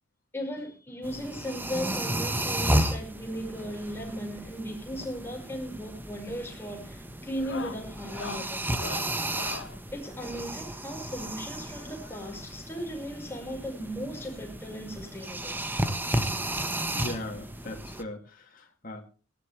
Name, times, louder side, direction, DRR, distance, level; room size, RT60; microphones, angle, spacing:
voice 1, 0.3-9.0 9.9-15.6, equal, 10° left, 0 dB, 5.4 m, -37 dB
sound 1, 1.0-18.0, right 1 dB, 10° right, 1.3 m, -33 dB
sound 2, 5.7-6.1 6.4-6.7 7.3-9.8 11.1-12.5 13.5-13.6 13.8-14.0 14.4-14.5 15.8-15.9 17.2-17.3, left 4 dB, 65° left, 1.5 m, -43 dB
voice 2, 16.7-19.0, left 1 dB, 45° left, 1 dB, 2.8 m, -39 dB
18.5 x 16.0 x 3.4 m, 0.36 s
head